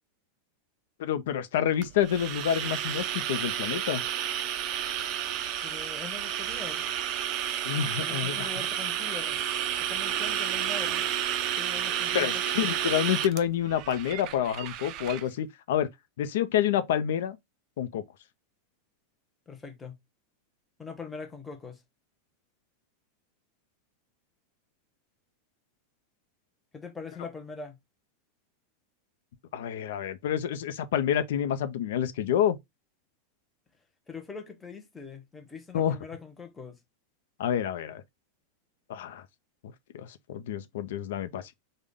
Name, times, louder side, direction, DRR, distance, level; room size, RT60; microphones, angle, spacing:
voice 1, 1.0-4.0 7.6-8.5 12.1-15.9 16.2-17.4 17.8-18.0 29.5-32.6 35.7-36.0 37.4-38.0 38.9-39.2 39.9-41.5, left 10 dB, 70° left, 0.4 m, -28 dB
sound 1, 1.8-15.2, right 10 dB, 35° right, 0.3 m, -31 dB
voice 2, 5.6-6.9 8.0-9.4 9.8-11.0 11.5-12.7 19.5-20.0 20.8-21.8 26.7-27.8 34.1-36.8, left 4 dB, 10° left, 0.6 m, -42 dB
3.7 x 2.1 x 3.3 m
supercardioid pair, 165°, 0 cm